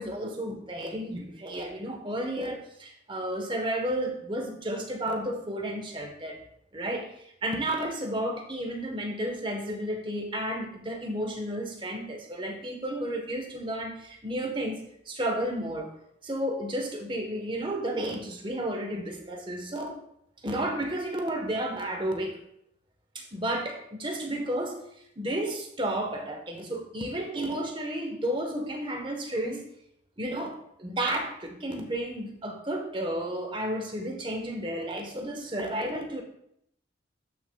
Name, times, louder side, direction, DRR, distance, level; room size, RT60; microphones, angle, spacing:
voice 1, 0.0-6.4 6.7-7.1 7.4-14.8 15.1-15.9 16.2-20.0 20.4-22.4 23.1-24.8 25.2-29.6 30.2-36.2, right 1 dB, 25° right, 3 dB, 1.1 m, -32 dB
12.5 x 6.2 x 2.3 m, 0.74 s
head